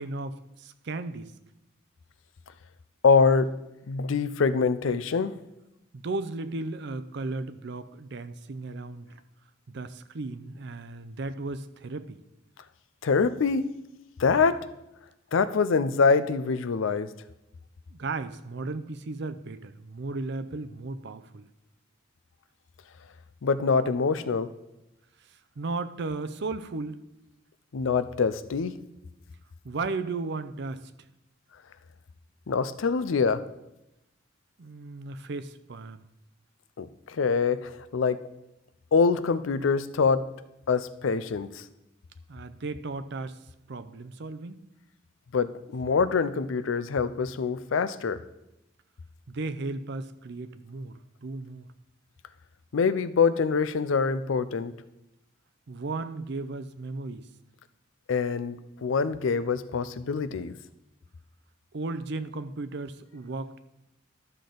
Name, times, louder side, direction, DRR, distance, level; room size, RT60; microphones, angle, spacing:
voice 1, 0.0-1.3 5.9-9.2 9.7-12.2 17.9-21.5 25.2-27.0 29.6-30.8 34.6-36.0 42.3-43.4 43.7-44.6 49.3-51.7 55.7-57.3 61.7-63.6, right 3 dB, 60° right, 12 dB, 0.6 m, -35 dB
voice 2, 3.0-3.5 3.9-5.3 13.0-13.7 14.2-14.7 15.3-17.1 23.4-24.5 27.7-28.8 32.5-33.4 36.8-38.2 38.9-40.3 40.7-41.6 45.3-48.2 52.7-54.7 58.1-60.5, left 5 dB, 75° left, 14 dB, 0.5 m, -25 dB
12.5 x 6.6 x 3.9 m, 0.91 s
head